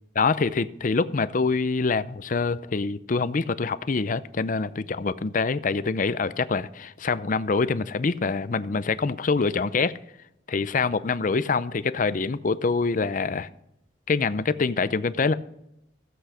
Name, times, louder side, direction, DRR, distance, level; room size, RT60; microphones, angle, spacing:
voice 1, 0.2-10.0 10.5-13.5 14.1-15.3, left 4 dB, 45° left, 0.5 m, -25 dB
15.0 x 8.0 x 5.0 m
head